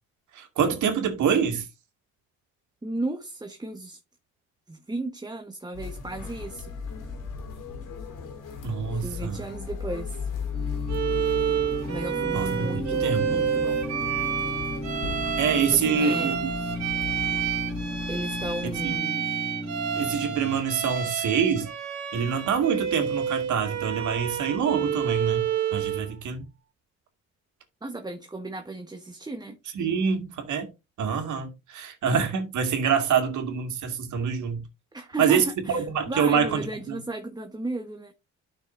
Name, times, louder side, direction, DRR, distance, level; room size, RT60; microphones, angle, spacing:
voice 1, 0.3-1.7 8.6-9.4 12.3-12.7 13.0-13.2 15.4-16.4 18.8-18.9 19.9-21.7 22.1-26.4 29.7-30.7 31.0-34.6 35.2-37.0, right 6 dB, 75° right, 2.2 m, -26 dB
voice 2, 2.8-4.0 4.7-6.7 8.9-10.3 11.9-13.9 15.7-16.7 18.1-19.2 27.8-29.6 34.9-38.1, right 2 dB, 15° right, 1.2 m, -35 dB
sound 1, 5.7-19.0, left 5 dB, 90° left, 3.3 m, -36 dB
sound 2, 10.5-20.6, equal, 20° left, 2.6 m, -35 dB
Bowed string instrument, 10.9-26.1, right 9 dB, 60° right, 2.7 m, -29 dB
12.0 x 6.0 x 2.6 m
cardioid pair, 90°, 30 cm